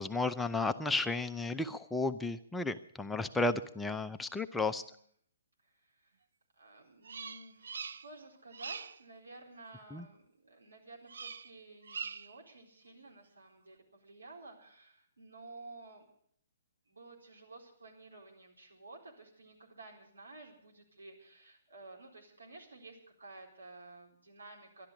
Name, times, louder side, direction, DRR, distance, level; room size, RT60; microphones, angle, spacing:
voice 1, 0.0-4.8 9.9-10.0, left 3 dB, 5° left, 8 dB, 0.6 m, -33 dB
voice 2, 4.2-5.0 5.6-6.2 6.6-16.1 16.9-24.9, right 2 dB, 85° right, 1 dB, 4.4 m, -53 dB
Bird vocalization bird call bird song, 7.0-8.2 8.5-9.0 11.1-11.5 11.8-12.4, right 6 dB, 65° right, 0.5 m, -43 dB
13.0 x 11.5 x 8.1 m, 0.65 s
figure-of-eight pair, 130°, 0 cm